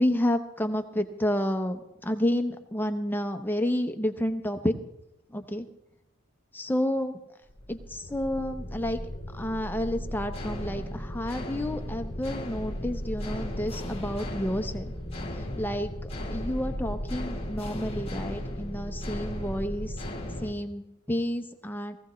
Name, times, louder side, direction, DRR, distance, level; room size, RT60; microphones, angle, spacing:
voice 1, 0.0-4.7 5.3-5.7 6.5-7.2 7.7-9.0 9.3-14.9 15.6-20.0 20.4-22.0, left 1 dB, 10° left, 6 dB, 0.8 m, -30 dB
sound 1, 7.5-20.5, left 1 dB, 25° left, 1.6 m, -35 dB
17.5 x 15.5 x 3.1 m, 0.86 s
head